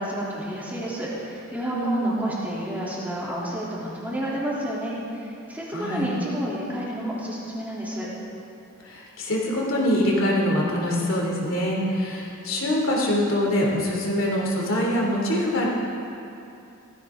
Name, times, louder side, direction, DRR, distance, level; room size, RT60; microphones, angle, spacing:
voice 1, 0.0-8.1, equal, 10° right, -7 dB, 3.3 m, -30 dB
voice 2, 1.7-2.3 5.7-6.1 8.8-15.7, equal, 65° left, -3 dB, 3.2 m, -24 dB
17.0 x 15.0 x 3.9 m, 2.7 s
head